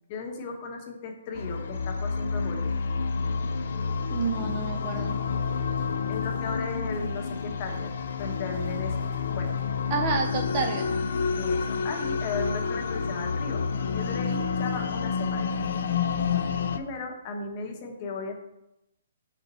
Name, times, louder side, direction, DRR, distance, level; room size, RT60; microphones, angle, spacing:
voice 1, 0.1-2.8 6.1-7.9 8.2-9.1 9.3-9.6 11.4-15.5 16.7-18.3, left 4 dB, 30° left, 3 dB, 0.9 m, -36 dB
sound 1, 1.3-16.8, left 5 dB, 65° left, 0.5 m, -29 dB
voice 2, 4.1-5.2 9.9-10.9, right 5 dB, 30° right, 3 dB, 0.5 m, -29 dB
sound 2, 4.1-9.8, right 2 dB, 70° right, 2.1 m, -50 dB
5.7 x 4.2 x 4.0 m, 0.87 s
hypercardioid pair, 160°, 0 cm